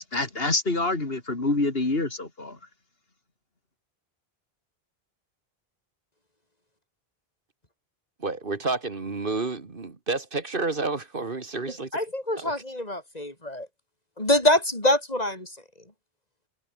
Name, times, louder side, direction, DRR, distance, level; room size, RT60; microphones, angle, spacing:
voice 1, 0.0-2.6, left 2 dB, 70° left, 3.6 m, -26 dB
voice 2, 8.2-11.9 12.4-12.5, right 3 dB, 60° right, 2.2 m, -30 dB
voice 3, 11.9-13.7 14.2-15.5, left 1 dB, 40° left, 5.3 m, -25 dB
omnidirectional pair, 1.0 m